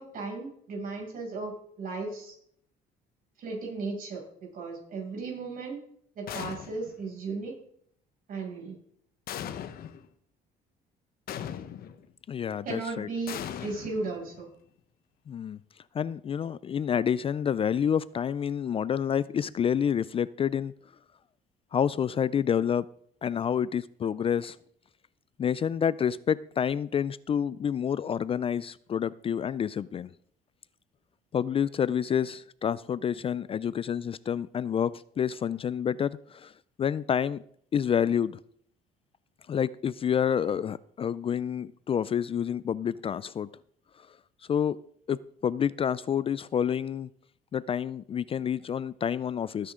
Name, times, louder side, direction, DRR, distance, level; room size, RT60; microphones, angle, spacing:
voice 1, 0.0-2.3 3.4-5.8 6.1-7.5 8.3-8.8 12.6-14.5, right 3 dB, 55° right, 6.7 m, -36 dB
sound 1, 6.3-7.0 9.3-10.1 11.3-12.0 13.3-14.5, left 9 dB, 65° left, 1.2 m, -39 dB
voice 2, 12.3-13.1 15.3-15.6 15.9-20.7 21.7-22.9 23.2-24.6 25.4-30.1 31.3-36.5 36.8-37.4 37.7-38.4 39.5-43.5 44.0-44.1 44.5-44.8 45.1-47.1 47.5-49.7, left 8 dB, 35° left, 0.4 m, -28 dB
18.5 x 9.9 x 3.7 m
cardioid pair, 110°, 17 cm